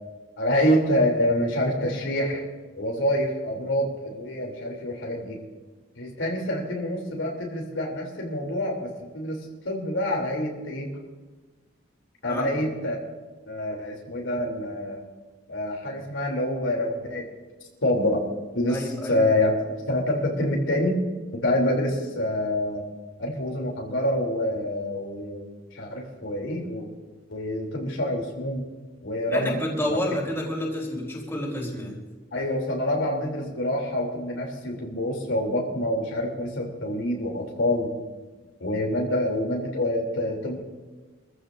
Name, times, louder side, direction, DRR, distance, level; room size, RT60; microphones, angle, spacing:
voice 1, 0.4-2.4 2.8-5.4 6.0-10.9 12.2-13.0 13.5-15.0 15.5-17.3 17.8-18.3 18.5-19.5 19.9-21.0 21.4-22.8 23.2-26.9 27.3-28.6 29.0-29.6 29.8-30.0 32.3-37.9 38.6-40.6, left 1 dB, 85° left, -1 dB, 3.1 m, -26 dB
voice 2, 12.3-12.7 18.7-19.3 29.3-32.0, left 1 dB, 15° left, -3 dB, 3.8 m, -30 dB
25.5 x 14.5 x 2.6 m, 1.3 s
head